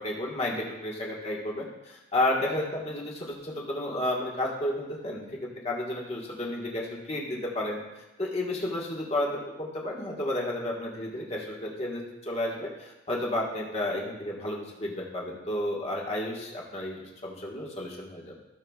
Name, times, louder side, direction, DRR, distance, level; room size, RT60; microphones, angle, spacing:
voice 1, 0.0-7.8 8.2-18.4, left 1 dB, 35° left, -3 dB, 1.5 m, -32 dB
16.0 x 5.9 x 2.4 m, 0.98 s
head